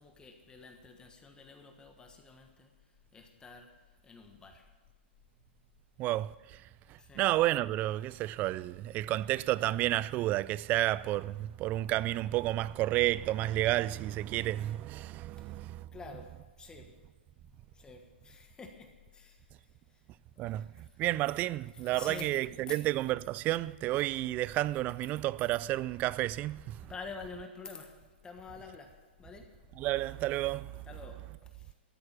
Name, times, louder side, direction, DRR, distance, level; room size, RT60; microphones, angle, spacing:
voice 1, 0.0-2.7 3.1-3.7 4.0-4.6 7.0-7.3 15.5-15.6 15.9-16.3 16.6-16.9 17.7-19.4 20.5-21.0 21.7-22.4 22.7-22.8 26.8-28.0 28.2-29.5 30.8-31.7, left 4 dB, 15° left, 1.4 m, -48 dB
voice 2, 6.0-16.3 20.4-27.0 29.8-31.4, right 15 dB, 25° right, 0.3 m, -31 dB
13.0 x 6.7 x 9.8 m
hypercardioid pair, 135°, 6 cm